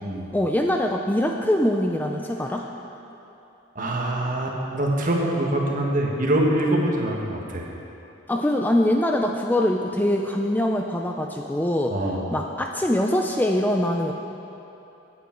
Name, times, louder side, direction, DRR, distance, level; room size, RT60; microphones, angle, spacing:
voice 1, 0.3-2.7 8.3-12.0 12.3-14.1, left 1 dB, 10° left, 2 dB, 0.4 m, -23 dB
voice 2, 3.7-7.7 11.9-12.3, right 1 dB, 40° right, -1 dB, 1.5 m, -24 dB
17.0 x 8.4 x 4.6 m, 2.9 s
head